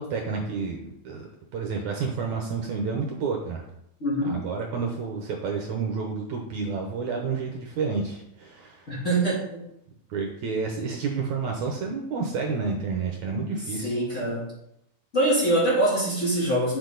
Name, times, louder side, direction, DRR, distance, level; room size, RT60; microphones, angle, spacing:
voice 1, 0.0-3.7 4.3-9.0 10.1-13.9, right 5 dB, 65° right, 1 dB, 2.2 m, -30 dB
voice 2, 4.0-4.4 8.9-9.6 13.8-14.5 15.1-16.8, right 1 dB, 20° left, -7 dB, 3.3 m, -24 dB
9.5 x 7.0 x 4.0 m, 0.79 s
omnidirectional pair, 3.9 m